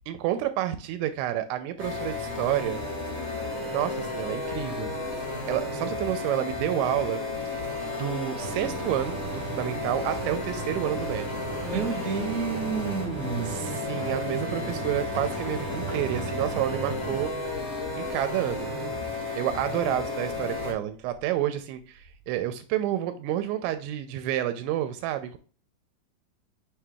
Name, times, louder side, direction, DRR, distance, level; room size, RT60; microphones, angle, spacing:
voice 1, 0.1-2.8 3.7-5.0 5.3-7.6 8.0-11.4 13.5-17.3 18.0-18.7 19.3-25.4, right 12 dB, 85° right, 2.8 m, -29 dB
sound 1, 1.8-20.7, left 2 dB, 20° left, 1.8 m, -33 dB
sound 2, 8.4-17.3, right 4 dB, 25° right, 2.2 m, -37 dB
voice 2, 11.6-13.6, right 5 dB, 60° right, 2.0 m, -30 dB
7.5 x 6.6 x 2.3 m
omnidirectional pair, 5.3 m